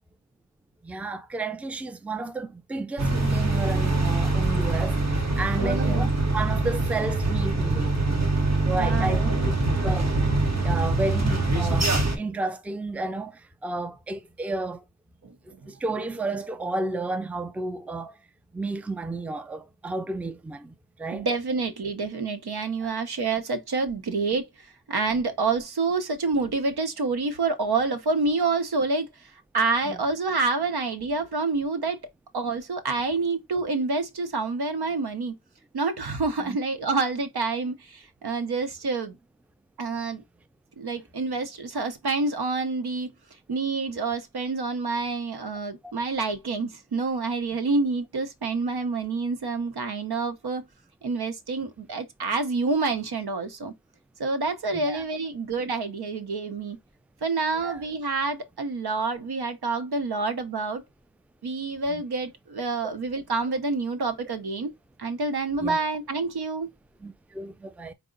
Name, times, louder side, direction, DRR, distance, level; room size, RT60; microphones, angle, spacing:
voice 1, 0.8-7.9 8.7-9.5 9.8-10.1 10.6-11.9 12.2-13.3 13.6-14.8 15.7-18.1 18.5-20.7 21.0-21.3 29.9-30.0 36.4-36.6 45.8-45.9 54.7-55.0 57.6-57.8 61.9-62.0 65.6-65.8 67.0-67.9, right 2 dB, 5° right, 0.4 m, -32 dB
sound 1, 3.0-12.2, right 2 dB, 45° right, 1.1 m, -24 dB
voice 2, 5.6-6.1 8.6-9.5 15.2-15.3 21.1-32.0 32.3-35.4 35.7-39.2 39.8-40.2 40.8-43.1 43.5-50.7 51.0-53.7 54.2-56.8 57.2-60.8 61.4-64.7 65.0-66.7, right 3 dB, 80° right, 0.7 m, -28 dB
4.7 x 2.0 x 3.8 m
wide cardioid pair, 80°, 38 cm